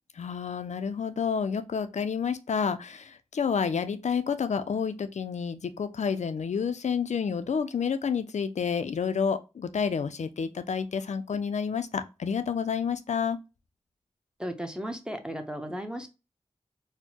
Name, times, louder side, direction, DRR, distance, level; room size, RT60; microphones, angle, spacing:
voice 1, 0.2-13.4, left 6 dB, 80° left, 0.4 m, -29 dB
voice 2, 14.4-16.1, equal, 5° right, 0.6 m, -35 dB
4.3 x 2.1 x 2.8 m
wide cardioid pair, 60°, 12 cm